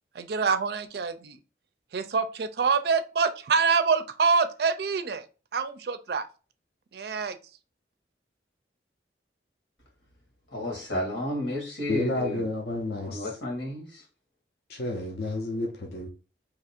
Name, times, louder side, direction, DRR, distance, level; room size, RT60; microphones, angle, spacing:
voice 1, 0.1-1.4 1.9-5.2 5.5-6.3 6.9-7.4, right 5 dB, 60° right, 0.4 m, -26 dB
voice 2, 10.5-12.5 13.0-14.1, left 1 dB, 85° left, 1.6 m, -32 dB
voice 3, 11.9-13.3 14.7-16.1, left 2 dB, 55° left, 0.5 m, -30 dB
2.8 x 2.5 x 4.2 m
head